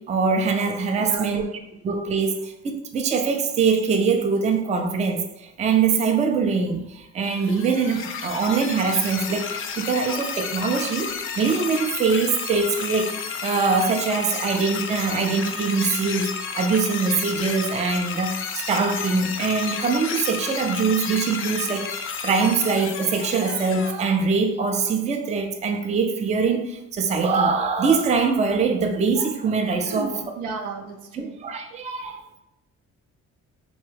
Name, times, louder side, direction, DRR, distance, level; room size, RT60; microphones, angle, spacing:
voice 1, 0.1-1.4 1.8-30.2 31.1-32.4, right 5 dB, 25° right, 5 dB, 0.3 m, -23 dB
voice 2, 1.0-1.6 29.9-30.1 30.4-31.4, right 5 dB, 85° right, 5 dB, 0.5 m, -33 dB
sound 1, 7.2-23.9, left 6 dB, 45° left, 0.4 m, -32 dB
3.0 x 2.2 x 3.2 m, 0.90 s
cardioid pair, 90°, 30 cm